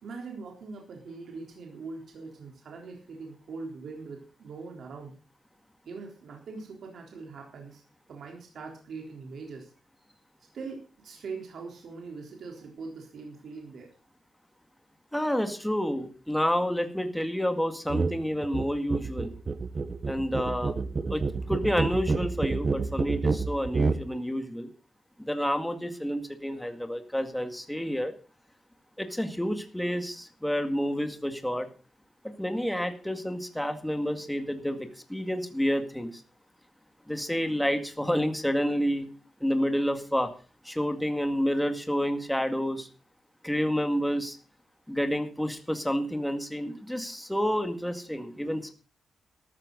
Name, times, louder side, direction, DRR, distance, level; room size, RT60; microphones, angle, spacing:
voice 1, 0.0-5.1 5.9-7.8 8.1-9.7 10.5-13.9, right 4 dB, 65° right, 1 dB, 3.7 m, -42 dB
voice 2, 15.1-19.3 20.0-20.7 21.1-24.7 25.3-28.1 29.0-31.7 32.4-36.2 37.1-39.1 39.4-40.3 40.6-42.9 43.4-44.4 44.9-48.7, equal, 5° left, 7 dB, 2.0 m, -29 dB
sound 1, 17.9-18.2 18.4-24.0, right 4 dB, 30° right, 1.1 m, -28 dB
13.5 x 13.5 x 4.0 m, 0.36 s
wide cardioid pair, 150°, 0 cm